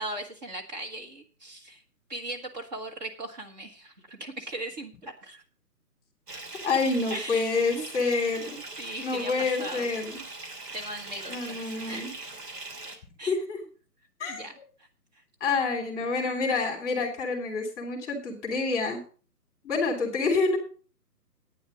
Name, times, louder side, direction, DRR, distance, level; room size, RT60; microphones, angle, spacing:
voice 1, 0.0-1.8 2.1-5.4 7.1-7.9 8.8-9.9 10.7-12.1 13.2-13.3 14.3-14.5, right 1 dB, 25° right, 2 dB, 1.5 m, -38 dB
Bathtub (filling or washing) / Fill (with liquid), 6.3-13.0, right 2 dB, 70° right, 2.9 m, -41 dB
voice 2, 6.6-8.6 9.0-10.2 11.3-12.1 13.3-13.6 14.2-14.6 15.4-19.0 19.6-20.6, left 4 dB, 15° left, 0 dB, 2.7 m, -28 dB
11.0 x 9.2 x 5.0 m, 0.39 s
figure-of-eight pair, 145°, 49 cm